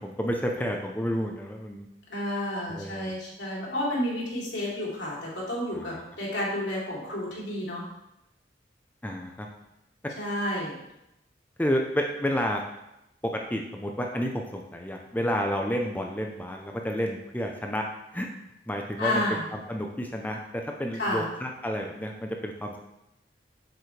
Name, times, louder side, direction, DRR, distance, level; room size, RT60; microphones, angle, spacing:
voice 1, 0.0-1.9 2.7-3.1 5.7-6.0 9.0-9.5 11.6-12.6 13.2-17.8 18.1-18.3 18.7-19.2 19.5-22.8, equal, 10° left, 2 dB, 0.7 m, -30 dB
voice 2, 2.1-7.8 10.1-10.7 19.0-19.5 21.0-21.3, left 1 dB, 85° left, -5 dB, 3.3 m, -30 dB
7.8 x 7.3 x 3.3 m, 0.86 s
head